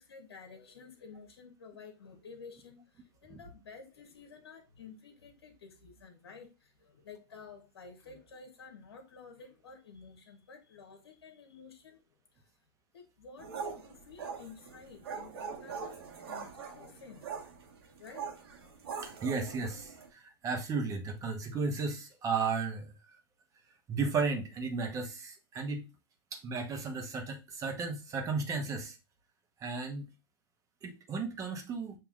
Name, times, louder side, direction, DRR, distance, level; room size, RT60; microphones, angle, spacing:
voice 1, 0.0-12.0 12.3-12.5 12.9-17.4 18.0-18.3, left 5 dB, 80° left, 1.0 m, -52 dB
sound 1, 13.4-20.1, right 6 dB, 75° right, 1.4 m, -42 dB
voice 2, 19.0-23.2 23.9-25.9 26.3-29.0 29.6-30.1 30.8-32.0, right 4 dB, 25° right, 1.1 m, -34 dB
6.9 x 2.9 x 2.4 m
hypercardioid pair, 120°, 13 cm